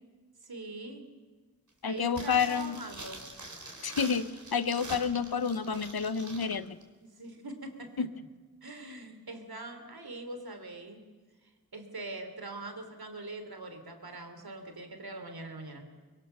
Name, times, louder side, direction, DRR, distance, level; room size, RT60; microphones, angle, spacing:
voice 1, 0.4-1.1 1.8-3.2 7.0-7.9 8.6-11.0 11.7-15.9, right 2 dB, 80° right, 6 dB, 3.3 m, -43 dB
voice 2, 1.8-2.8 3.8-4.3 4.5-6.8 8.0-8.1, left 6 dB, 85° left, 13 dB, 1.0 m, -29 dB
sound 1, 2.1-6.5 6.8-6.9, right 2 dB, 50° right, 4.1 m, -45 dB
24.0 x 23.0 x 6.8 m, 1.4 s
cardioid pair, 45°, 36 cm